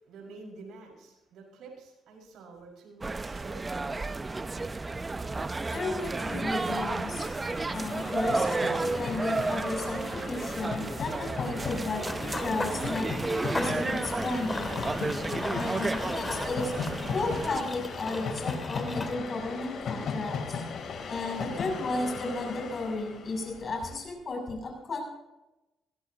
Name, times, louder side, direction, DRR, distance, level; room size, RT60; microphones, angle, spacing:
voice 1, 0.1-4.1, right 3 dB, 80° right, 0 dB, 5.1 m, -49 dB
sound 1, 3.0-17.6, right 3 dB, 25° right, 0.6 m, -32 dB
Train, 5.6-24.0, left 5 dB, 65° left, 3.3 m, -38 dB
voice 2, 5.7-7.3 7.7-13.1 13.5-14.8 15.5-16.7 17.1-20.6 21.1-25.0, left 2 dB, 45° left, 1 dB, 7.1 m, -34 dB
Run / Bird vocalization bird call bird song, 11.7-19.1, left 2 dB, 20° left, 2.4 m, -38 dB
22.0 x 16.5 x 2.8 m, 0.98 s
cardioid pair, 90°, 0 cm